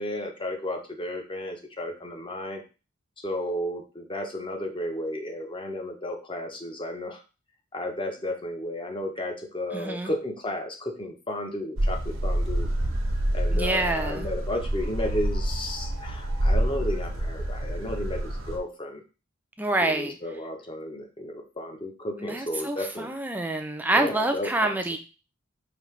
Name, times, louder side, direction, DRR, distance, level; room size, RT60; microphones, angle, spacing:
voice 1, 0.0-2.6 3.2-7.2 7.7-12.7 13.3-19.0 19.8-23.1 23.9-24.8, left 1 dB, 25° left, 3 dB, 0.8 m, -33 dB
voice 2, 9.7-10.1 13.5-14.3 19.6-20.2 22.2-25.0, right 2 dB, 10° right, 5 dB, 0.4 m, -27 dB
sound 1, 11.8-18.6, right 1 dB, 85° right, 1.1 m, -27 dB
5.1 x 2.8 x 3.2 m, 0.32 s
head